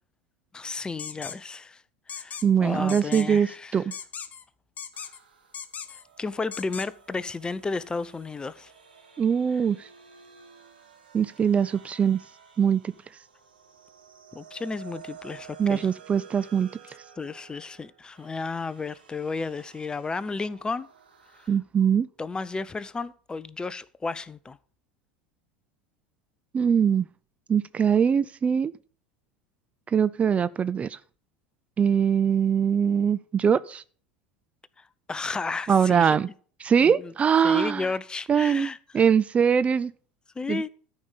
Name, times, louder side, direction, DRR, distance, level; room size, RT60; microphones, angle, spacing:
voice 1, 0.5-1.8 2.1-3.8 6.2-8.7 14.3-15.9 17.2-20.9 22.2-24.6 35.1-36.1 36.8-37.1 37.4-38.8 40.4-40.7, left 4 dB, 15° left, 0.6 m, -33 dB
sound 1, 1.0-1.4 2.1-2.5 2.9-3.3 3.9-4.4 4.8-5.2 5.5-6.0 6.5-6.9, left 7 dB, 30° left, 1.0 m, -38 dB
voice 2, 2.4-3.9 9.2-9.9 11.1-12.2 12.6-12.8 15.6-16.7 21.5-22.1 26.5-27.1 27.5-28.7 29.9-31.0 31.8-33.8 35.7-36.3 36.6-37.9 38.3-39.9 40.5-40.6, right 7 dB, 25° right, 0.4 m, -22 dB
sound 2, 4.9-21.5, right 7 dB, 85° right, 2.2 m, -52 dB
12.5 x 5.4 x 6.7 m
hypercardioid pair, 80°, 5 cm